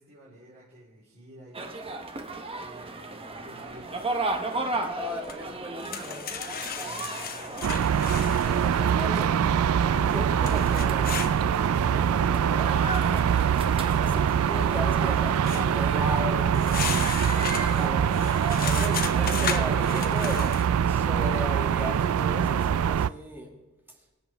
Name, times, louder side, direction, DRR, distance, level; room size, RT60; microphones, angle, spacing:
voice 1, 0.0-1.8 2.6-4.2 6.5-8.0, right 1 dB, 50° right, -8 dB, 3.8 m, -51 dB
sound 1, 1.5-20.2, right 2 dB, 25° right, 1.0 m, -36 dB
voice 2, 5.0-6.4 8.1-9.5 9.9-13.3 13.9-18.1 18.5-23.5, equal, 10° right, 0 dB, 2.1 m, -37 dB
sound 2, 5.3-5.4 5.8-8.9 10.4-11.3 15.4-15.6 16.5-20.7, left 7 dB, 45° left, 0.9 m, -35 dB
sound 3, 7.6-23.1, right 8 dB, 70° right, 0.3 m, -24 dB
23.5 x 8.0 x 3.4 m, 1.1 s
head